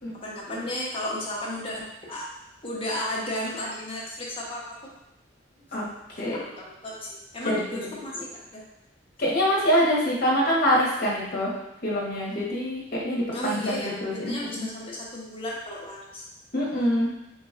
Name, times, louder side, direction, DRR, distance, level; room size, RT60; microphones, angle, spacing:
voice 1, 0.2-2.2 2.6-4.6 6.3-8.6 13.3-16.2, left 1 dB, 30° left, -5 dB, 1.0 m, -34 dB
voice 2, 7.4-7.9 9.2-11.5 11.8-14.7 16.5-17.1, equal, 55° left, -4 dB, 1.2 m, -25 dB
3.9 x 2.9 x 3.7 m, 0.93 s
head